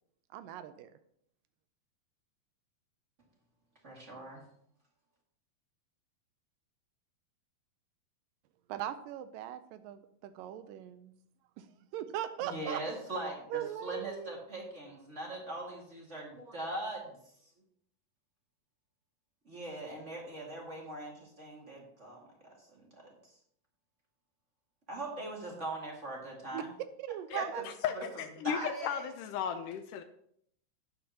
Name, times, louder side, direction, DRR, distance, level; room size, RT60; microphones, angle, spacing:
voice 1, 0.3-0.9 8.7-11.1 11.6-11.7 11.9-12.8 13.5-14.4 26.5-26.6 27.0-27.6, right 12 dB, 80° right, 11 dB, 2.2 m, -39 dB
voice 2, 3.8-4.4 12.4-17.2 19.5-22.3 22.7-23.3 24.9-26.7 27.4-27.6 27.9-28.0 28.4-29.0, right 1 dB, 25° right, -1 dB, 1.6 m, -41 dB
voice 3, 27.3-30.0, left 8 dB, 80° left, 8 dB, 2.0 m, -36 dB
11.0 x 9.6 x 2.9 m, 0.68 s
omnidirectional pair, 4.0 m